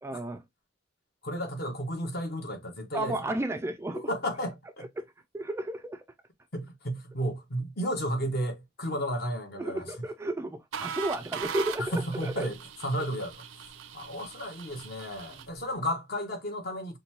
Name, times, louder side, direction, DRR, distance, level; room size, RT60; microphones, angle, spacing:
voice 1, 0.0-0.4 2.9-4.1 5.0-6.0 9.6-12.5, right 1 dB, 15° right, 0.3 m, -33 dB
voice 2, 1.2-3.1 3.9-4.9 6.5-9.9 11.8-12.6 12.8-13.4 13.9-17.0, equal, 55° left, 1.2 m, -33 dB
sound 1, 10.7-15.6, right 7 dB, 90° right, 0.5 m, -40 dB
5.2 x 2.2 x 2.9 m
head